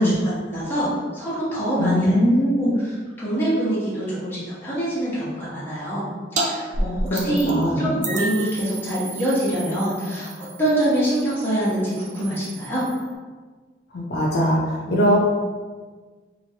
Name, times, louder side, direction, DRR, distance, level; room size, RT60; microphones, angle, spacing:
voice 1, 0.0-2.2 2.6-6.1 6.3-10.3 10.6-12.8, right 1 dB, 15° left, -10 dB, 1.1 m, -25 dB
voice 2, 1.8-2.8 6.8-7.8 13.9-15.2, equal, 60° left, -3 dB, 0.5 m, -21 dB
sound 1, 6.4-6.5 6.7-7.6 8.0-13.1, right 2 dB, 40° right, 0.4 m, -31 dB
3.0 x 2.5 x 2.8 m, 1.4 s
head